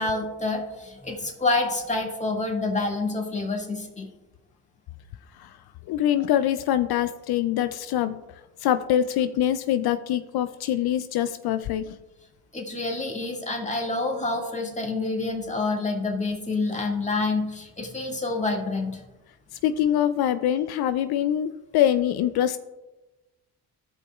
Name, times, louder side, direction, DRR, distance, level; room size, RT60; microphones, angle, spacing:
voice 1, 0.0-4.1 12.5-19.0, left 3 dB, 20° left, 1 dB, 2.0 m, -27 dB
voice 2, 5.9-8.2 8.6-12.0 19.6-22.6, left 11 dB, 65° left, 11 dB, 0.5 m, -24 dB
14.5 x 5.4 x 2.4 m, 1.1 s
supercardioid pair, 55°, 40 cm